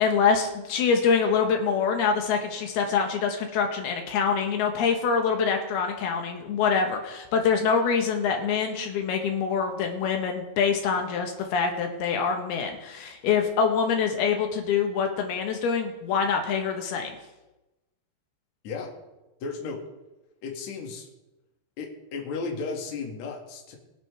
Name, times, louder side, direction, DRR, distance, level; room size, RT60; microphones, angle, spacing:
voice 1, 0.0-17.2, left 6 dB, 75° left, 3 dB, 3.0 m, -25 dB
voice 2, 19.4-19.8 20.4-21.1 21.8-23.8, left 4 dB, 50° left, 0 dB, 2.6 m, -34 dB
23.0 x 8.8 x 3.3 m, 1.0 s
omnidirectional pair, 4.7 m